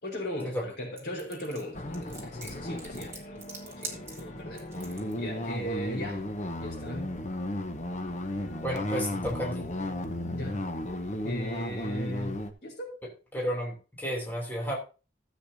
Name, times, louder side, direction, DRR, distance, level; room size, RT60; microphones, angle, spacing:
voice 1, 0.0-6.2 6.6-7.1 10.3-10.6 11.2-12.9, equal, 60° left, 4.4 m, -38 dB
sound 1, 1.0-5.1, right 3 dB, 15° right, 2.4 m, -43 dB
sound 2, 1.7-12.5, left 1 dB, 40° left, 1.1 m, -35 dB
voice 2, 8.6-9.7 13.3-14.8, equal, 10° left, 3.1 m, -32 dB
15.0 x 8.1 x 2.8 m
head